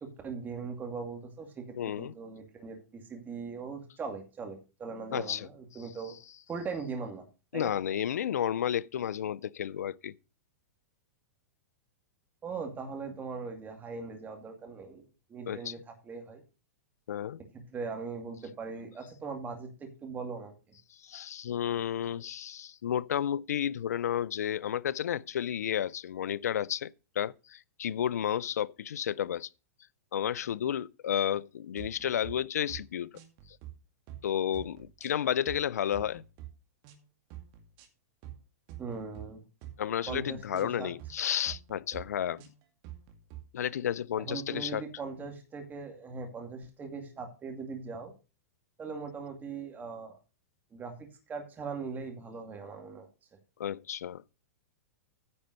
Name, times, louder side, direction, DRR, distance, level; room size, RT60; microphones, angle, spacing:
voice 1, 0.0-6.2 6.5-7.2 7.5-7.7 12.4-16.4 17.7-20.5 38.8-39.4 40.1-40.9 44.2-48.1 48.8-50.2 50.7-50.9 51.3-53.1, right 5 dB, 20° right, 2.3 m, -40 dB
voice 2, 1.8-2.1 5.1-5.5 5.7-5.8 7.5-10.1 15.5-15.7 17.1-17.4 21.0-29.5 30.1-33.1 34.2-36.2 39.8-42.4 43.5-44.8 53.6-54.2, left 10 dB, 80° left, 0.4 m, -32 dB
sound 1, 31.8-32.3 32.7-32.9 33.2-33.7 34.1-34.3 34.5-35.6 35.9-36.5 36.8-37.0 37.3-37.9 38.2-38.4 38.7-39.3 39.6-39.8 40.1-40.6 41.0-41.2 41.5-42.0 42.4-43.4, right 13 dB, 45° right, 2.1 m, -46 dB
9.8 x 5.2 x 6.4 m
hypercardioid pair, 115°, 8 cm